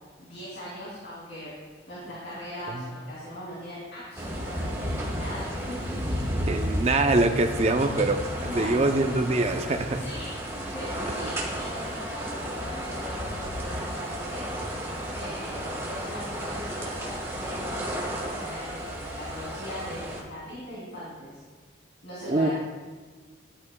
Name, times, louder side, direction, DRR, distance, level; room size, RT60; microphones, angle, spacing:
voice 1, 0.2-1.5 1.9-6.2 8.4-9.0 9.9-14.6 15.1-21.4 22.0-22.5, equal, 65° left, -8 dB, 2.8 m, -40 dB
sound 1, 4.1-20.2, equal, 15° right, 1.2 m, -33 dB
voice 2, 6.5-10.0 22.3-22.5, right 2 dB, 35° right, 6 dB, 0.5 m, -24 dB
12.5 x 11.0 x 2.2 m, 1.4 s
head